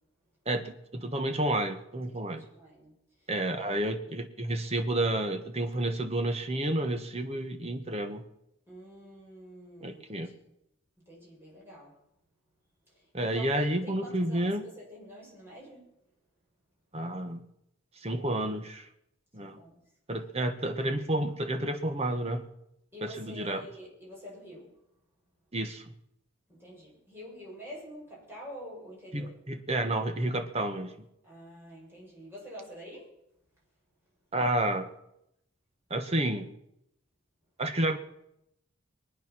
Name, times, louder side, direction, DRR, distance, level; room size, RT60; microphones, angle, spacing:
voice 1, 0.5-2.4 3.3-8.2 9.8-10.3 13.1-14.7 16.9-17.4 18.0-18.9 19.3-19.6 20.1-22.4 23.0-23.7 25.5-25.8 29.1-30.9 34.3-34.9 35.9-36.5 37.6-38.0, right 1 dB, 30° right, 7 dB, 1.2 m, -30 dB
voice 2, 2.2-2.9 3.5-3.8 8.7-10.3 11.1-11.9 13.2-15.9 19.4-19.8 22.9-24.7 26.5-29.3 31.2-33.1, equal, 10° right, -5 dB, 6.3 m, -47 dB
23.0 x 9.3 x 6.1 m, 0.82 s
head